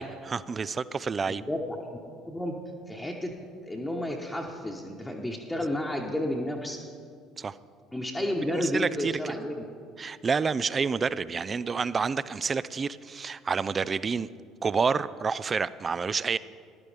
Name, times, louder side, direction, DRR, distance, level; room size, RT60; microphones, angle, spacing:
voice 1, 0.0-1.4 7.4-7.6 8.5-9.2 10.0-14.3 14.6-16.4, right 5 dB, 30° right, 17 dB, 0.3 m, -29 dB
voice 2, 1.3-2.0 2.2-2.6 2.9-3.3 3.6-6.8 7.9-9.6, left 1 dB, 10° left, -1 dB, 1.1 m, -31 dB
15.0 x 11.5 x 3.4 m, 2.2 s
figure-of-eight pair, 55°, 0 cm